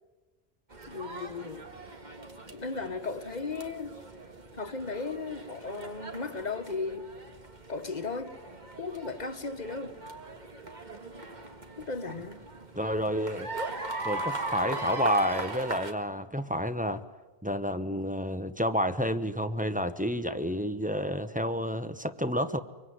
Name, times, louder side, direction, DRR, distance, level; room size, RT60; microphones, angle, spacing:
sound 1, 0.7-15.9, right 2 dB, 45° right, 1.9 m, -40 dB
voice 1, 0.9-1.7 2.5-4.0 4.5-7.1 7.7-8.4 8.8-10.0 11.8-12.4, left 4 dB, 45° left, 9 dB, 1.5 m, -36 dB
voice 2, 12.8-13.5 14.0-17.0 17.4-22.6, equal, 10° right, 9 dB, 0.9 m, -30 dB
24.5 x 24.0 x 9.5 m, 1.2 s
omnidirectional pair, 1.1 m